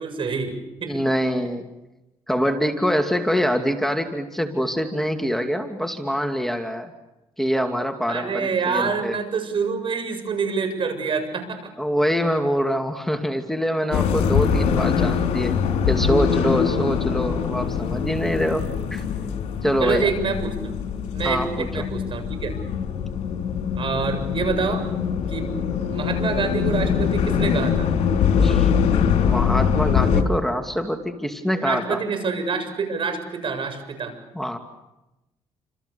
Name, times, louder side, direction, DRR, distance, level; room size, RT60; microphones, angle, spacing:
voice 1, 0.0-0.9 8.1-11.6 16.7-16.9 19.8-20.7 21.1-22.5 23.8-24.8 25.3-25.5 25.9-27.9 31.6-34.1, right 5 dB, 50° right, 7 dB, 7.5 m, -26 dB
voice 2, 0.8-1.6 2.3-6.9 7.4-9.2 11.8-15.6 15.9-19.0 19.6-20.1 21.2-21.9 28.4-28.7 29.2-32.0 34.3-34.6, equal, 5° left, 5 dB, 2.4 m, -24 dB
sound 1, 13.9-30.2, left 7 dB, 75° left, 3.9 m, -23 dB
29.5 x 27.0 x 7.0 m, 0.98 s
cardioid pair, 80°, 11 cm